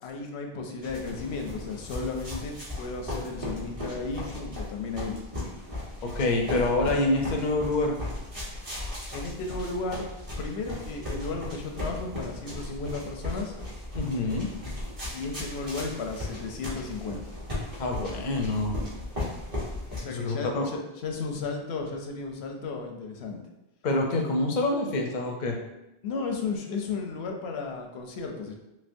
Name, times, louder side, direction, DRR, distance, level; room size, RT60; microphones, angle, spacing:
voice 1, 0.0-5.2 9.1-10.1 10.4-13.5 15.1-17.3 19.9-23.4 26.0-28.5, left 4 dB, 90° left, 3 dB, 0.8 m, -34 dB
sound 1, 0.8-20.0, left 1 dB, 35° right, 1.1 m, -37 dB
voice 2, 6.0-8.0 13.9-14.5 17.8-18.8 20.1-20.7 23.8-25.6, left 2 dB, 55° left, 2 dB, 0.6 m, -26 dB
3.2 x 2.9 x 2.5 m, 0.93 s
omnidirectional pair, 1.0 m